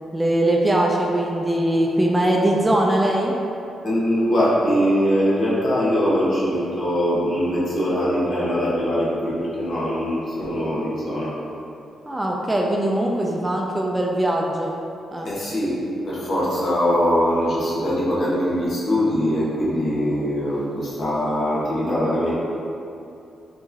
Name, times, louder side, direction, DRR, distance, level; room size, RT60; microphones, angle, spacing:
voice 1, 0.1-3.4 12.1-14.7 15.1-15.3, right 1 dB, 15° right, -1 dB, 0.4 m, -21 dB
voice 2, 3.8-11.4 15.2-22.3, equal, 60° left, -7 dB, 1.2 m, -22 dB
4.5 x 3.0 x 2.8 m, 2.6 s
cardioid pair, 95°, 0 cm